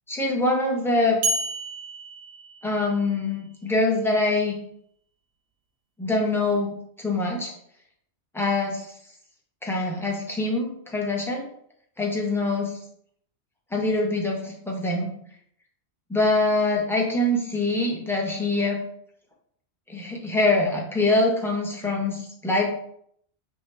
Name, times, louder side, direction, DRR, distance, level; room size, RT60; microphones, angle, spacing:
voice 1, 0.1-1.2 2.6-4.6 6.0-7.5 8.3-8.9 9.6-11.5 12.0-12.7 13.7-15.1 16.1-18.8 19.9-22.7, left 2 dB, 5° left, 0 dB, 0.5 m, -24 dB
sound 1, 1.2-3.3, right 2 dB, 60° right, 0.8 m, -30 dB
4.7 x 2.9 x 3.3 m, 0.67 s
omnidirectional pair, 1.2 m